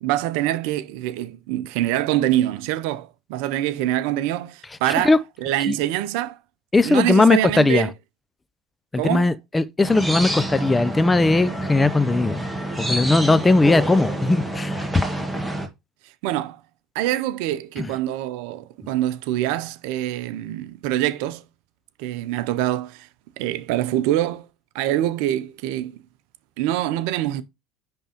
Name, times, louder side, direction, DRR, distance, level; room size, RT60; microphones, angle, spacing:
voice 1, 0.0-6.4 6.8-7.9 9.0-9.3 16.0-16.6 16.9-21.4 22.0-23.1 23.4-24.5 24.7-26.0 26.6-27.4, right 13 dB, 70° right, 0.6 m, -25 dB
voice 2, 6.7-7.9 8.9-12.5 12.8-14.9 17.8-17.9, left 2 dB, 15° left, 0.6 m, -19 dB
sound 1, 9.8-15.7, right 1 dB, 5° right, 1.8 m, -27 dB
10.0 x 3.5 x 2.9 m
hypercardioid pair, 75°, 0 cm